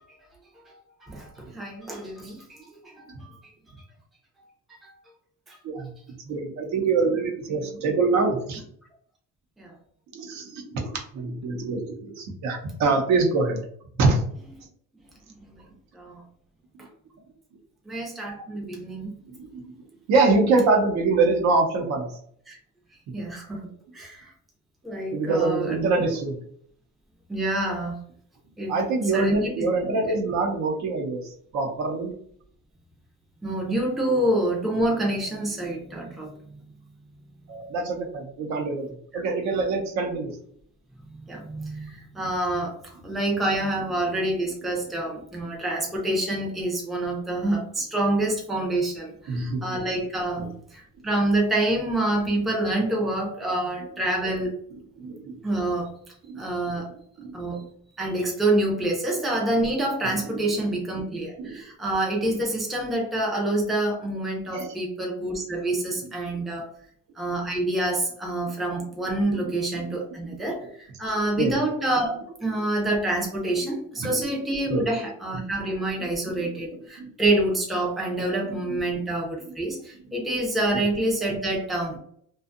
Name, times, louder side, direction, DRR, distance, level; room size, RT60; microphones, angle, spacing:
voice 1, 1.0-3.3 4.8-4.9 5.5-5.6 9.6-9.7 15.5-15.6 15.9-16.2 16.8-16.9 17.9-19.2 22.5-22.6 23.1-23.7 23.9-24.3 24.8-25.8 27.3-28.0 28.6-28.7 29.1-29.5 30.1-30.2 33.4-36.6 39.1-39.2 41.1-42.8 43.0-54.6 55.4-55.9 56.4-56.9 57.3-57.6 58.0-66.7 67.2-82.0, right 1 dB, ahead, -2 dB, 0.5 m, -27 dB
voice 2, 6.3-8.6 10.1-13.6 14.0-14.2 19.4-19.7 20.1-22.1 25.1-26.4 28.7-32.1 37.5-38.9 39.1-40.4 49.3-49.8 50.4-50.5 55.0-55.3 56.3-56.5 57.2-57.4 60.9-61.0 61.4-61.6 64.5-64.8 66.3-66.4 69.8-69.9 71.4-71.5 74.0-74.1 74.7-74.8 76.4-76.5 77.0-77.1 80.7-80.8, right 3 dB, 60° right, 3 dB, 0.7 m, -25 dB
2.6 x 2.3 x 2.5 m, 0.62 s
cardioid pair, 145°, 32 cm